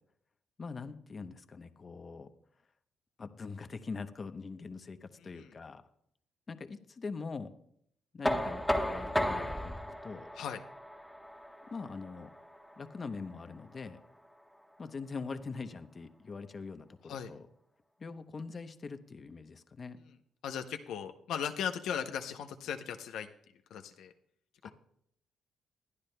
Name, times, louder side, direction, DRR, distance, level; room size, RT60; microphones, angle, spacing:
voice 1, 0.6-2.3 3.2-5.8 6.5-7.5 8.1-10.3 11.7-12.3 12.8-14.0 14.8-17.5 18.0-20.0 24.6-24.7, left 4 dB, 35° left, 9 dB, 0.8 m, -43 dB
Knock, 8.2-14.0, equal, 5° left, 1.2 m, -35 dB
voice 2, 20.4-23.3 23.7-24.1 24.6-24.7, left 8 dB, 80° left, 6 dB, 0.7 m, -37 dB
20.5 x 12.0 x 2.2 m, 0.70 s
cardioid pair, 90°, 0 cm